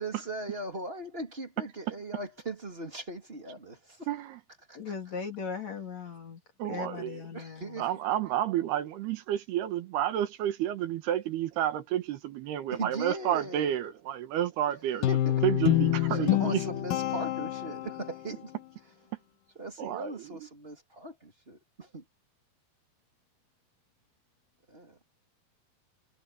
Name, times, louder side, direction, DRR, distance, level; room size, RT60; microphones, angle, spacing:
voice 1, 0.0-4.1 4.7-4.8 7.3-7.9 12.7-13.7 15.1-15.4 16.1-18.5 19.6-22.0 24.7-25.0, right 2 dB, 15° right, 2.9 m, -39 dB
voice 2, 4.1-4.4 6.6-7.2 7.8-15.1 15.4-16.6 19.8-20.5, right 11 dB, 80° right, 3.5 m, -30 dB
voice 3, 4.8-6.4 6.7-7.9, left 5 dB, 45° left, 3.6 m, -38 dB
Guitar, 15.0-18.3, left 14 dB, 70° left, 2.6 m, -27 dB
omnidirectional pair, 4.5 m